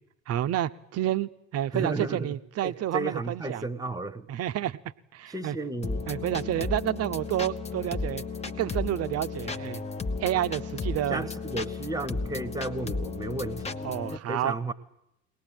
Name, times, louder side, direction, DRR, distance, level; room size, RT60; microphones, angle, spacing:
voice 1, 0.3-3.6 4.3-4.8 5.1-5.6 6.1-8.2 8.6-9.8 10.2-11.3 13.8-14.6, right 12 dB, 40° right, 13 dB, 0.9 m, -29 dB
voice 2, 1.7-2.4 2.6-4.3 5.3-6.0 6.4-6.5 11.1-14.7, right 2 dB, 10° right, 13 dB, 1.3 m, -33 dB
sound 1, 5.8-14.2, left 4 dB, 15° left, 1.1 m, -34 dB
22.5 x 19.0 x 9.1 m, 0.82 s
figure-of-eight pair, 60°, 39 cm